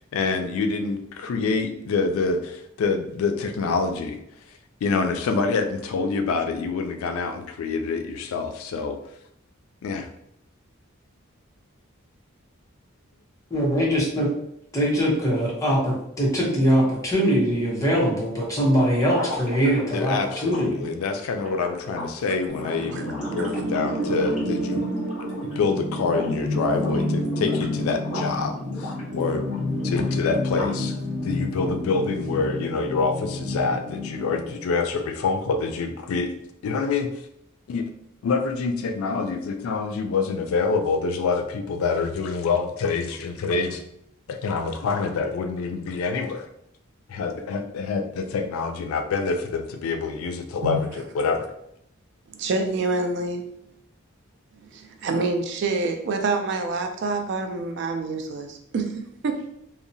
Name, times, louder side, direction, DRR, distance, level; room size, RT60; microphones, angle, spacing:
voice 1, 0.1-4.2 4.8-9.0 9.8-10.1 19.9-24.9 25.6-29.4 29.8-30.9 31.2-36.3 36.6-37.1 37.7-37.8 38.2-43.8 44.3-46.5 47.1-51.5, left 4 dB, 80° left, 7 dB, 0.3 m, -26 dB
voice 2, 13.5-14.3 14.7-20.9, equal, 15° left, -5 dB, 0.7 m, -22 dB
sound 1, 18.9-25.6 25.9-26.4 26.7-28.4 28.7-30.9, left 1 dB, 35° left, 1.1 m, -37 dB
sound 2, 22.5-34.5, left 1 dB, 10° right, 1.4 m, -29 dB
voice 3, 52.3-53.4 54.7-59.4, right 3 dB, 55° right, 5 dB, 0.3 m, -27 dB
2.7 x 2.0 x 2.6 m, 0.75 s
head